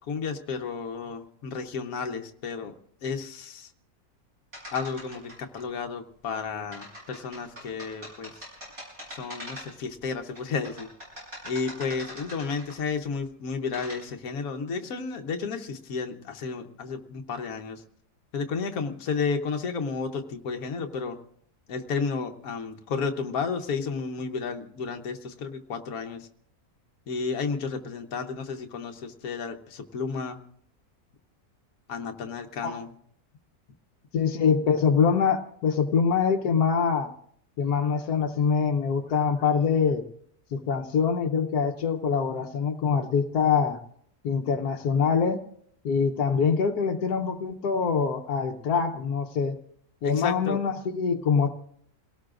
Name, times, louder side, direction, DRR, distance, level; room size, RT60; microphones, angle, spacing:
voice 1, 0.1-2.7 3.0-3.7 4.7-8.4 9.1-10.9 11.4-17.8 18.3-21.2 21.7-26.3 27.1-30.4 31.9-32.9 50.0-50.6, left 5 dB, 70° left, 4 dB, 1.4 m, -32 dB
sound 1, 4.5-5.6 6.7-9.9 10.4-12.9 13.5-14.0, equal, 65° right, 8.1 m, -42 dB
voice 2, 34.1-37.1 37.6-40.0 40.5-43.8 44.2-45.4 45.8-49.5 50.0-51.5, left 6 dB, 85° left, 5 dB, 1.4 m, -24 dB
28.5 x 17.5 x 2.5 m, 0.66 s
omnidirectional pair, 1.6 m